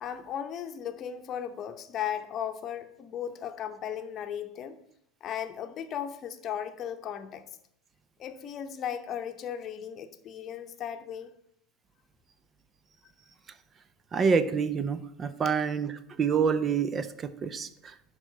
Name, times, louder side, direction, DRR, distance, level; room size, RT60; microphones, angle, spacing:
voice 1, 0.0-4.8 5.2-7.4 8.2-11.3, left 9 dB, 40° left, 8 dB, 0.8 m, -36 dB
voice 2, 14.1-17.9, right 6 dB, 30° right, 13 dB, 0.6 m, -27 dB
11.0 x 3.7 x 5.1 m, 0.73 s
figure-of-eight pair, 75°, 0 cm